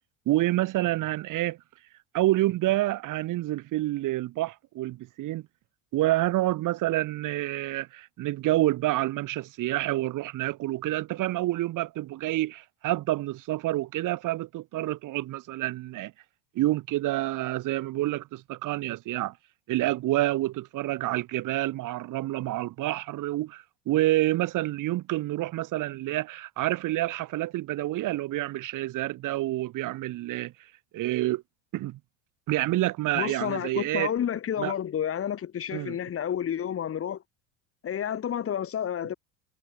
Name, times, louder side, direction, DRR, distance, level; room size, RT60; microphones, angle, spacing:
voice 1, 0.3-1.6 2.1-5.4 5.9-16.1 16.5-19.3 19.7-30.5 30.9-31.4 31.7-32.0 32.5-34.1 34.6-34.7 35.7-36.0, right 16 dB, 55° right, 4.5 m, -28 dB
voice 2, 33.1-37.2 37.8-39.1, left 9 dB, 35° left, 3.7 m, -30 dB
supercardioid pair, 105°, 37 cm